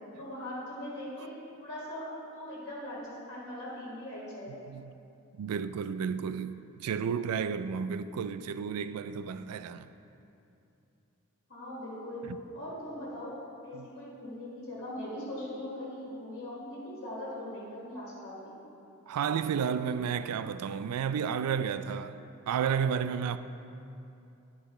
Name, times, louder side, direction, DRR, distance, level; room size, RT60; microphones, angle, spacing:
voice 1, 0.2-1.3 1.6-2.1 2.3-4.6 11.5-12.3 12.5-13.4 13.6-18.5, left 1 dB, 60° left, 1.7 m, -40 dB
voice 2, 5.3-9.9 12.3-12.4 13.7-13.9 19.1-22.1 22.5-23.4, right 7 dB, 85° right, 0.3 m, -32 dB
10.5 x 5.0 x 4.3 m
head